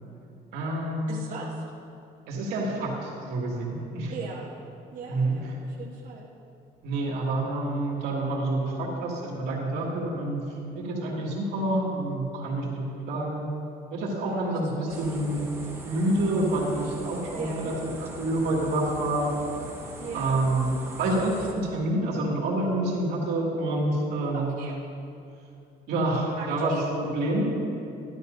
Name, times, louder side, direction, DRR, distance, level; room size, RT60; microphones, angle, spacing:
voice 1, 0.5-1.2 2.3-4.1 5.1-5.3 6.8-10.4 10.7-12.8 13.1-13.4 13.9-15.4 15.8-17.7 18.0-19.3 19.6-19.7 20.1-20.7 21.0-24.5 25.9-27.5, right 1 dB, 80° right, -3 dB, 2.4 m, -27 dB
voice 2, 1.1-1.6 4.1-4.5 4.9-6.3 14.2-15.3 17.3-17.7 20.0-20.4 24.3-24.7 26.4-26.8, right 5 dB, 50° right, -5 dB, 1.3 m, -39 dB
sound 1, 14.9-21.5, right 1 dB, 15° right, 1.5 m, -41 dB
12.5 x 12.0 x 2.7 m, 2.7 s
cardioid pair, 110°, 17 cm